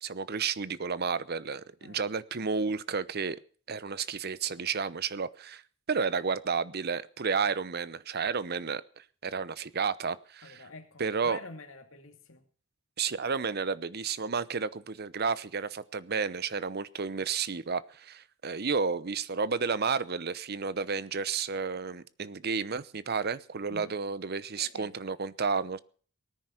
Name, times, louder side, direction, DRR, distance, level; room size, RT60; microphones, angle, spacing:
voice 1, 0.0-3.4 3.7-5.6 5.9-10.6 11.0-11.4 13.0-25.8, right 5 dB, 55° right, 0.8 m, -32 dB
voice 2, 10.4-12.4 23.7-23.9 24.5-24.9, left 2 dB, 85° left, 2.5 m, -47 dB
18.5 x 10.0 x 5.9 m
head